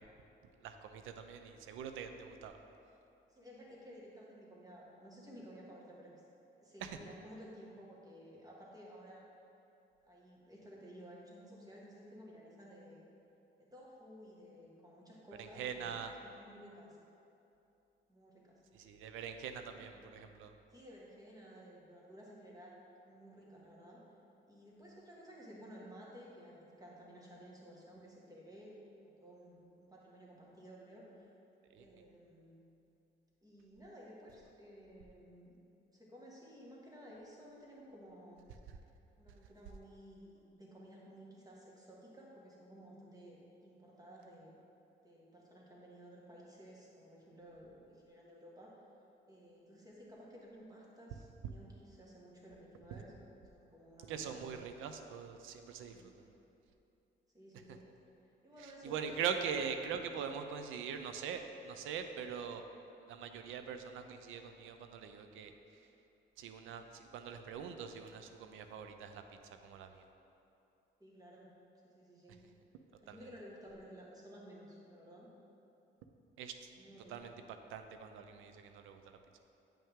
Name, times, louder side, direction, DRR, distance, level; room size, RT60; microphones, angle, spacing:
voice 1, 0.6-2.6 6.8-6.9 15.4-16.1 18.7-20.5 31.7-31.9 54.1-56.1 58.6-62.6 63.1-65.5 66.4-69.2 69.6-70.1 73.1-73.2 76.4-76.7 77.1-77.3 77.7-79.2, right 7 dB, 90° right, 7 dB, 0.6 m, -42 dB
voice 2, 3.3-6.2 6.6-9.2 10.0-13.1 13.7-15.9 16.2-17.0 18.1-18.6 19.7-19.9 20.7-24.0 24.5-31.3 31.8-32.6 33.4-35.5 35.9-38.5 39.2-44.5 45.0-48.8 49.3-53.1 53.4-54.6 55.9-56.1 57.3-57.8 58.4-58.9 71.0-71.5 71.8-72.4 73.0-75.3 76.8-77.3, equal, 20° right, -4 dB, 1.7 m, -55 dB
8.7 x 5.6 x 3.6 m, 2.8 s
cardioid pair, 90°, 20 cm